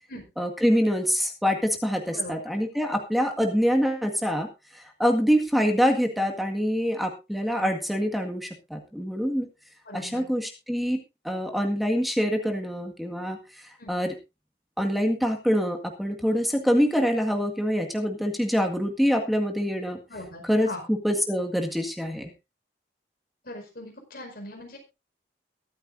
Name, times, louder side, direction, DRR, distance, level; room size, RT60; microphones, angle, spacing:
voice 1, 0.4-4.5 4.7-9.5 9.9-13.4 13.9-14.1 14.8-20.0 20.4-22.3, equal, ahead, 4 dB, 1.8 m, -25 dB
voice 2, 2.1-2.5 2.9-3.0 9.9-10.2 13.8-13.9 20.1-20.8 23.4-24.8, left 1 dB, 55° left, 2 dB, 5.0 m, -40 dB
22.5 x 8.9 x 2.6 m, 0.26 s
head